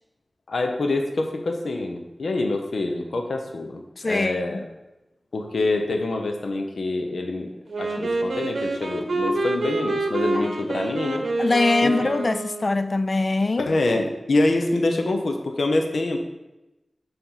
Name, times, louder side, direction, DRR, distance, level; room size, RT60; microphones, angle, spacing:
voice 1, 0.5-4.6 5.3-7.5 7.8-11.2 11.8-11.9 13.6-16.2, left 2 dB, 85° left, 0.7 m, -25 dB
voice 2, 4.0-4.6 10.4-10.5 11.4-13.7, left 3 dB, 45° left, 0.3 m, -23 dB
Wind instrument woodwind instrument, 7.7-12.9, right 2 dB, 75° right, 0.8 m, -27 dB
7.0 x 3.5 x 5.6 m
wide cardioid pair, 75°, 0 cm